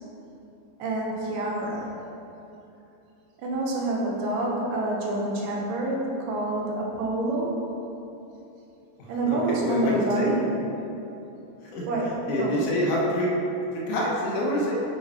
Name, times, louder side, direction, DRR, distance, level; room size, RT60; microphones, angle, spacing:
voice 1, 0.8-1.9 3.4-7.6 9.1-10.9 11.9-12.6, right 2 dB, 90° right, -3 dB, 2.7 m, -27 dB
voice 2, 9.3-10.3 11.7-11.9 12.3-13.3 13.7-14.8, equal, 75° left, -4 dB, 2.6 m, -26 dB
8.4 x 4.9 x 4.4 m, 2.9 s
omnidirectional pair, 3.7 m